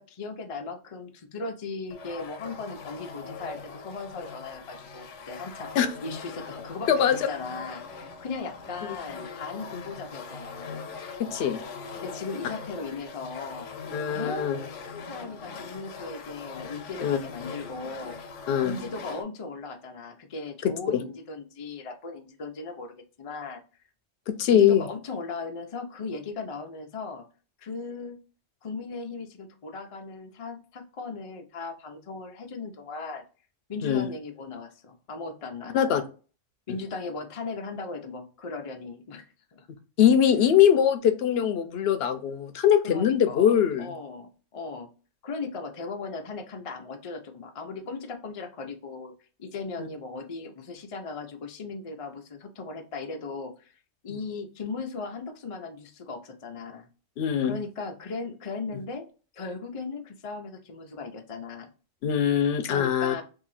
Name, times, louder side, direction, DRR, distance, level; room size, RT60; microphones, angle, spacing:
voice 1, 0.0-5.7 6.0-10.8 11.9-13.7 14.1-14.6 14.9-18.2 18.6-23.6 24.5-27.3 27.6-28.2 28.6-33.2 33.7-36.0 36.7-39.2 39.5-39.7 42.8-43.5 43.8-44.9 45.2-49.1 49.4-56.9 57.4-59.0 59.3-61.7 62.6-63.2, left 4 dB, 50° left, 4 dB, 0.4 m, -37 dB
sound 1, 1.9-19.2, left 5 dB, 85° left, 1.0 m, -41 dB
voice 2, 13.9-14.6 17.0-17.2 18.5-18.8 20.6-21.0 24.3-24.8 33.8-34.1 35.7-36.0 40.0-43.9 49.8-49.9 57.2-57.6 62.0-63.1, left 9 dB, 65° left, 8 dB, 0.8 m, -22 dB
2.9 x 2.7 x 3.9 m, 0.36 s
omnidirectional pair, 1.2 m